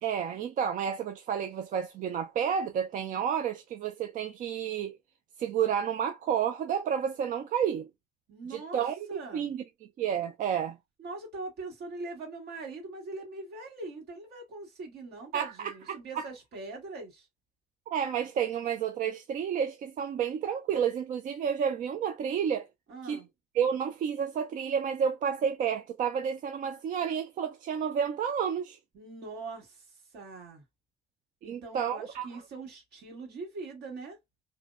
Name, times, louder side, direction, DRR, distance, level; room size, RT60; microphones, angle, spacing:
voice 1, 0.0-5.0 5.4-7.9 8.5-9.6 10.0-10.8 15.3-16.3 17.9-22.7 23.0-23.2 23.5-28.8 31.4-32.3, right 8 dB, 50° right, 0.4 m, -30 dB
voice 2, 8.3-9.5 11.0-17.3 22.9-23.3 28.9-30.6 31.4-34.2, right 3 dB, 75° right, 1.5 m, -42 dB
2.6 x 2.0 x 2.3 m
cardioid pair, 110°, 17 cm